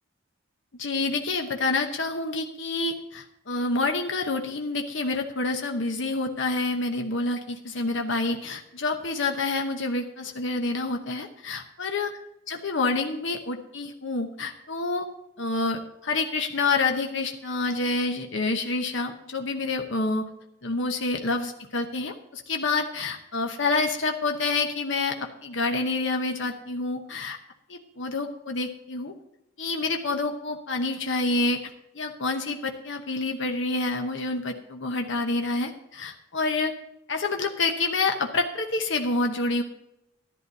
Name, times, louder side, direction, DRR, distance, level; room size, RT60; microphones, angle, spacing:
voice 1, 0.8-12.1 12.5-15.1 15.4-20.2 20.6-25.2 25.4-27.4 27.7-29.1 29.6-36.7 37.1-39.6, left 3 dB, 60° left, 4 dB, 1.0 m, -28 dB
13.0 x 11.0 x 4.1 m, 0.86 s
head